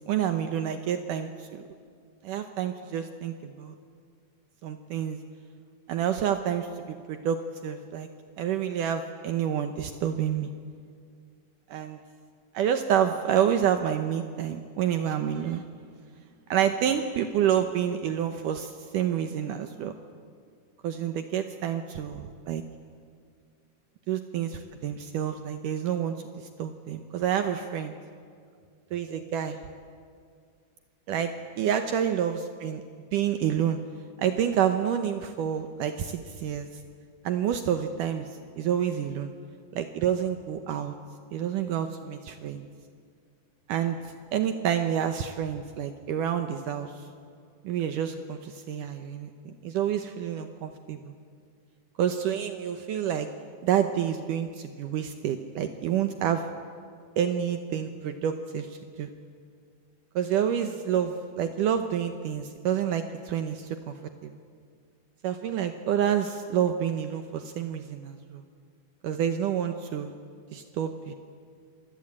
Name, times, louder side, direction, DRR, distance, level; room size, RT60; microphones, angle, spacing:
voice 1, 0.1-1.6 2.2-3.8 4.6-5.2 5.9-8.1 8.4-10.5 11.7-12.0 12.5-15.6 16.5-19.9 20.8-22.6 24.1-27.9 28.9-29.6 31.1-32.8 33.1-33.8 34.2-36.7 37.2-38.3 38.6-39.3 39.7-40.9 41.3-42.7 43.7-44.0 44.3-46.9 47.6-51.1 52.0-53.3 53.6-56.5 57.2-58.7 59.0-59.1 60.2-63.9 64.2-64.3 65.2-68.4 69.0-70.2 70.5-71.1, right 9 dB, 70° right, 7 dB, 2.3 m, -28 dB
28.0 x 24.0 x 8.7 m, 2.1 s
omnidirectional pair, 4.2 m